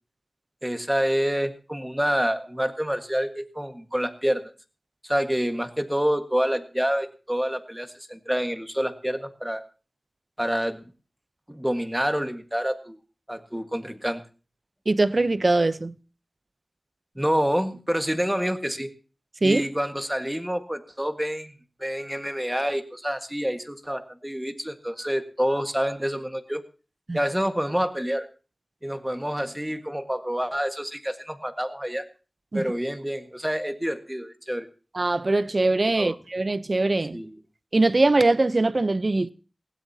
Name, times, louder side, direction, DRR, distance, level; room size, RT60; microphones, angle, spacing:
voice 1, 0.6-4.5 5.0-9.6 10.4-10.8 11.5-13.0 13.3-14.2 17.1-18.9 19.4-21.5 21.8-26.6 27.1-28.3 28.8-32.0 32.5-34.7 36.0-36.2 37.1-37.4, equal, 10° right, 1.6 m, -27 dB
voice 2, 14.9-16.0 19.4-19.6 27.1-27.2 32.5-32.6 34.9-37.2 37.7-39.3, right 2 dB, 45° right, 0.7 m, -22 dB
19.5 x 16.5 x 2.8 m
wide cardioid pair, 70°, 0 cm